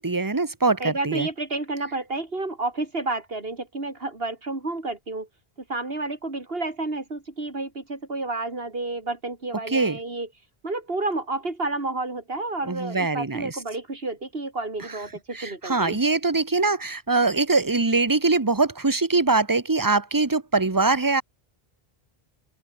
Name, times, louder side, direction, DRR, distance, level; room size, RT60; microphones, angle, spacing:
voice 1, 0.0-1.3 9.7-10.0 12.6-13.6 14.9-15.0 15.3-21.2, right 3 dB, 20° right, 1.1 m, -23 dB
voice 2, 0.8-5.3 5.7-10.3 10.6-16.0, right 2 dB, 70° right, 3.9 m, -30 dB
open air
omnidirectional pair, 1.0 m